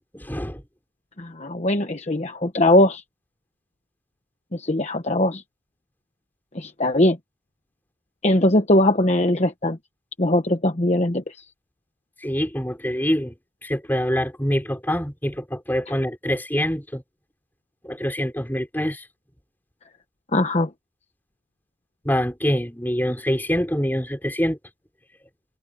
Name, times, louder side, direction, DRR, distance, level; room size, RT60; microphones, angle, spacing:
voice 1, 0.1-0.6 12.2-13.3 13.6-17.0 17.8-19.1 22.0-24.6, equal, 10° left, 6.1 m, -25 dB
voice 2, 1.2-3.0 4.5-5.4 6.5-7.2 8.2-9.8 10.2-11.3 20.3-20.7, left 1 dB, 35° left, 1.1 m, -20 dB
head